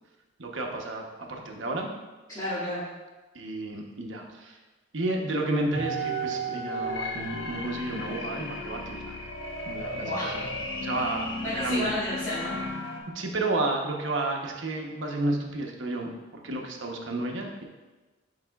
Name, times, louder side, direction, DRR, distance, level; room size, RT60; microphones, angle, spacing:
voice 1, 0.4-1.9 3.3-4.6 4.9-9.2 9.7-10.5 10.8-11.9 13.1-17.6, right 2 dB, 70° right, 1 dB, 0.9 m, -31 dB
voice 2, 2.3-2.8 10.0-10.4 11.4-12.6, left 1 dB, 20° left, -14 dB, 2.0 m, -31 dB
sound 1, 5.7-13.0, equal, 75° left, 1.1 m, -34 dB
9.5 x 4.8 x 2.3 m, 1.2 s
head